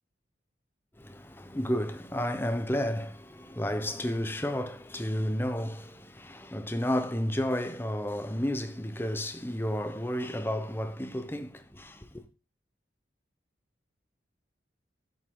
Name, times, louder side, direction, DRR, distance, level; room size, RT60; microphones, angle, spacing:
voice 1, 1.0-12.3, equal, 10° left, 0.9 m, -32 dB
11.5 x 8.2 x 3.8 m
head